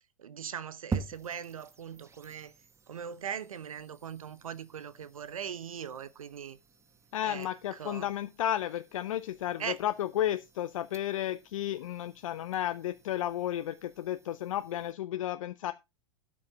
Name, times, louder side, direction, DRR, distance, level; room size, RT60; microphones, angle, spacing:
voice 1, 0.2-2.5 2.9-6.6 7.2-8.1 9.6-9.8, right 8 dB, 85° right, 1.0 m, -40 dB
sound 1, 0.9-14.9, right 5 dB, 15° right, 1.2 m, -46 dB
voice 2, 7.1-15.7, left 12 dB, 70° left, 0.7 m, -33 dB
12.5 x 7.4 x 3.8 m
hypercardioid pair, 100°, 17 cm